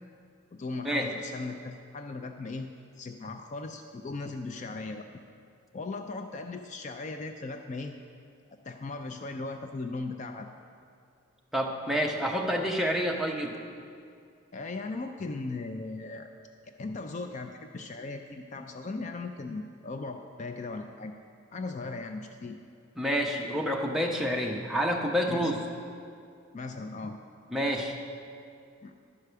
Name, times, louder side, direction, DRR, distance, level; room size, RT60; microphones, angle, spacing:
voice 1, 0.5-2.7 3.0-5.2 5.7-8.0 8.6-10.5 14.5-16.3 16.8-21.2 21.5-22.6 25.3-25.5 26.5-27.2 28.8-28.9, left 3 dB, 35° left, 5 dB, 0.4 m, -38 dB
voice 2, 11.5-13.6 23.0-25.6 27.5-27.9, equal, ahead, 0 dB, 0.7 m, -28 dB
11.0 x 4.7 x 6.7 m, 2.4 s
head